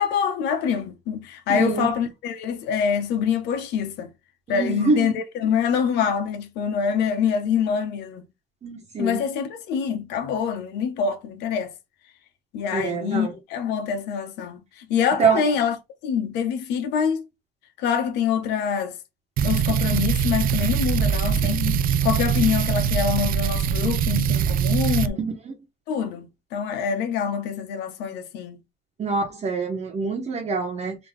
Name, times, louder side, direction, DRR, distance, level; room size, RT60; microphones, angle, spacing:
voice 1, 0.0-4.1 4.5-8.3 9.0-11.7 12.5-15.8 16.0-17.2 17.8-19.0 19.4-25.2 25.9-28.6, left 7 dB, 90° left, 1.1 m, -25 dB
voice 2, 1.5-1.9 4.5-5.1 8.6-9.2 12.7-13.3 15.2-15.4 25.2-25.3 29.0-31.0, right 4 dB, 40° right, 1.2 m, -25 dB
sound 1, 19.4-25.1, right 8 dB, 60° right, 0.4 m, -22 dB
3.7 x 3.0 x 3.3 m
cardioid pair, 110°, 17 cm